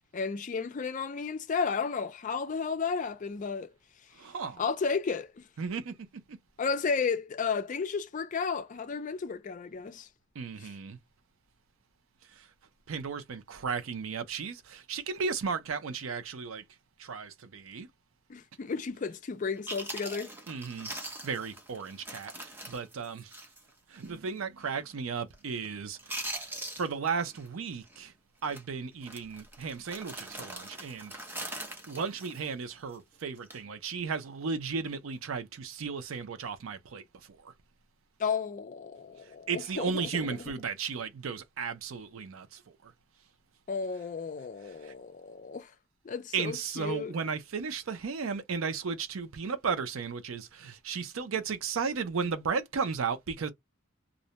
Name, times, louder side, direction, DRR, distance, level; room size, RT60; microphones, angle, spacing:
voice 1, 0.1-3.7 4.6-5.4 6.6-10.1 10.6-10.7 18.3-20.3 38.2-40.3 43.7-45.7 46.0-47.1, left 5 dB, 40° left, 0.3 m, -33 dB
voice 2, 4.1-4.6 5.6-6.4 10.3-11.0 12.3-12.5 12.9-16.6 17.0-17.9 20.5-23.3 23.9-28.1 28.4-31.2 31.9-37.5 39.5-42.9 44.8-44.9 46.3-53.5, right 5 dB, 80° right, 0.5 m, -35 dB
Chewing mastication, 19.3-19.4 19.7-23.7 24.0-24.1 24.6-24.9 25.2-25.7 25.9-27.5 27.7-28.0 28.4-28.6 29.0-33.0 33.4-33.6, right 1 dB, 10° right, 0.6 m, -42 dB
2.5 x 2.1 x 2.7 m
head